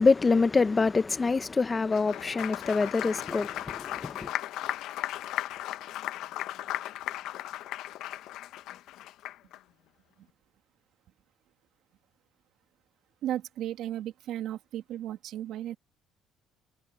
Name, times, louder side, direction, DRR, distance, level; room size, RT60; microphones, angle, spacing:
voice 1, 0.0-4.3, left 4 dB, 25° left, 1.0 m, -25 dB
Applause, 1.8-9.6, left 14 dB, 75° left, 0.8 m, -36 dB
voice 2, 13.2-15.8, right 12 dB, 70° right, 1.9 m, -35 dB
cardioid pair, 95°, 0 cm